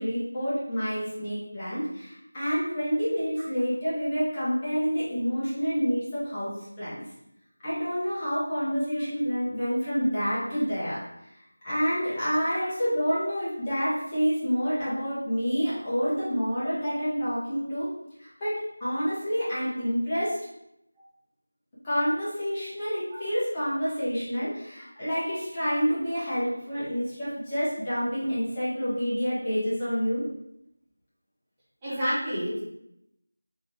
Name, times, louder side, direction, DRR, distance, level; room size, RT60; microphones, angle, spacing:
voice 1, 0.0-6.9 7.6-11.0 11.6-17.9 18.2-20.3 21.8-30.2, equal, 15° left, -11 dB, 0.7 m, -28 dB
voice 2, 31.8-32.6, equal, 10° right, -14 dB, 1.0 m, -29 dB
3.6 x 2.4 x 3.0 m, 0.81 s
figure-of-eight pair, 175°, 0 cm